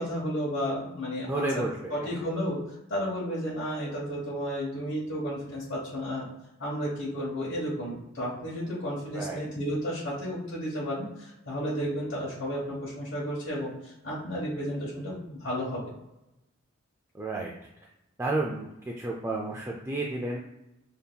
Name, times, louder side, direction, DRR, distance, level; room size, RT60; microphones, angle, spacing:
voice 1, 0.0-1.6 1.9-2.6 2.9-6.3 6.6-15.8, equal, 65° left, -6 dB, 1.1 m, -32 dB
voice 2, 1.3-1.9 9.1-9.4 17.1-17.5 18.2-18.7 19.0-20.4, right 2 dB, 15° right, -3 dB, 0.3 m, -31 dB
5.2 x 2.8 x 2.3 m, 0.92 s
head